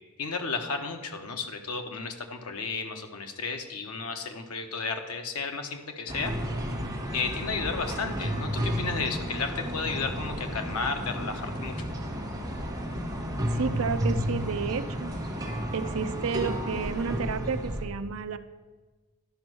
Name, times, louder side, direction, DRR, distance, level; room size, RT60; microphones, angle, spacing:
voice 1, 0.2-6.3 7.1-11.9, left 4 dB, 85° left, 5 dB, 1.0 m, -33 dB
sound 1, 6.1-17.9, equal, 15° right, 1.4 m, -32 dB
voice 2, 13.5-15.1 15.7-18.4, right 5 dB, 70° right, 10 dB, 0.6 m, -31 dB
11.5 x 5.3 x 6.2 m, 1.3 s
head